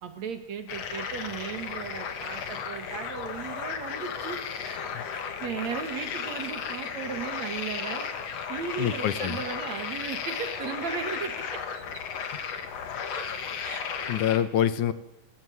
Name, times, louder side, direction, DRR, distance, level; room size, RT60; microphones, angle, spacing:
voice 1, 0.0-8.1 8.5-11.8 12.1-12.3 13.1-13.3 13.6-14.1, right 6 dB, 60° right, 9 dB, 3.0 m, -36 dB
sound 1, 0.7-14.4, left 6 dB, 55° left, 2.8 m, -35 dB
voice 2, 8.8-9.4 14.1-14.9, left 10 dB, 70° left, 14 dB, 2.4 m, -26 dB
30.0 x 13.5 x 9.5 m, 0.91 s
omnidirectional pair, 3.7 m